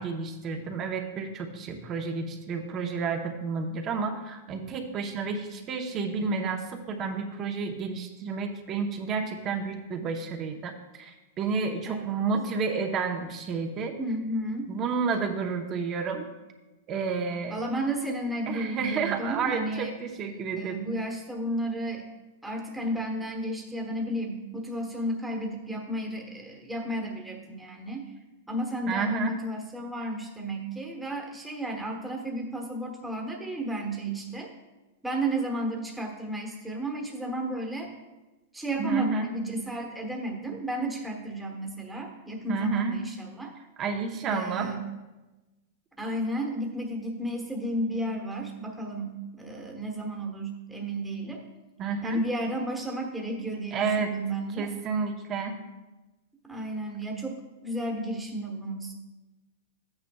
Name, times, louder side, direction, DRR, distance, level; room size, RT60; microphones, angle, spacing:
voice 1, 0.0-14.0 14.7-16.2 16.9-17.5 18.5-20.9 28.9-29.4 38.8-39.3 42.5-43.0 43.8-44.7 51.8-52.2 53.7-54.1 54.6-55.6, right 5 dB, 30° right, 4 dB, 0.9 m, -31 dB
voice 2, 11.8-12.2 14.0-14.7 17.5-19.9 20.3-22.0 22.4-28.0 28.5-34.5 35.0-37.9 38.5-43.5 44.3-44.8 46.0-51.4 52.0-54.7 56.4-58.9, right 1 dB, 5° right, 0 dB, 1.3 m, -33 dB
12.5 x 8.9 x 2.3 m, 1.1 s
supercardioid pair, 145°, 0 cm